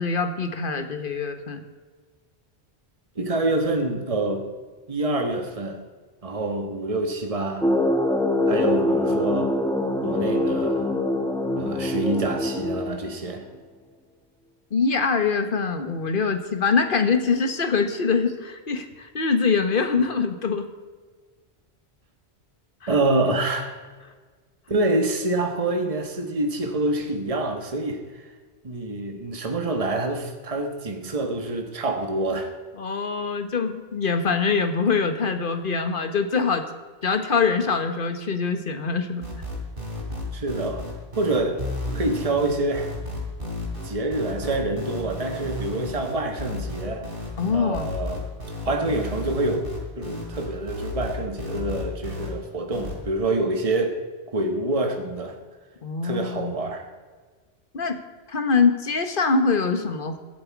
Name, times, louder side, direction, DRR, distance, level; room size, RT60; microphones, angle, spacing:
voice 1, 0.0-1.6 14.7-20.7 22.8-22.9 32.8-36.6 37.0-39.2 47.4-47.9 55.8-56.5 57.7-58.0 58.3-60.2, left 5 dB, 55° left, 7 dB, 1.4 m, -24 dB
voice 2, 3.2-4.4 4.9-5.8 6.2-7.7 8.5-9.5 10.0-10.9 11.6-13.4 22.9-23.8 24.7-28.3 28.6-32.5 40.3-40.9 41.2-41.6 41.9-42.9 43.8-47.1 47.5-48.2 48.6-49.7 50.0-54.0 54.3-55.4 56.0-56.9, right 2 dB, 35° right, 4 dB, 1.4 m, -26 dB
sound 1, 7.6-13.4, left 1 dB, 5° left, 1.1 m, -24 dB
sound 2, 39.2-52.3 52.7-52.9, left 1 dB, 55° right, 3.7 m, -33 dB
23.0 x 7.9 x 4.7 m, 1.5 s
omnidirectional pair, 1.1 m